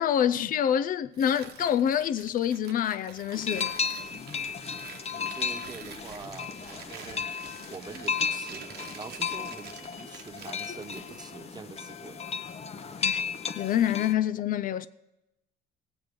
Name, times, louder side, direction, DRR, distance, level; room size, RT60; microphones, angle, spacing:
voice 1, 0.0-3.7 13.0-13.2 13.6-14.9, left 9 dB, 55° left, 0.5 m, -26 dB
Tearing, 1.1-11.3, right 8 dB, 75° right, 1.1 m, -47 dB
sound 1, 3.3-14.1, left 6 dB, 40° left, 0.9 m, -34 dB
voice 2, 5.1-7.3 7.7-12.2, right 4 dB, 25° right, 0.7 m, -44 dB
17.5 x 7.8 x 5.2 m
cardioid pair, 110°, 17 cm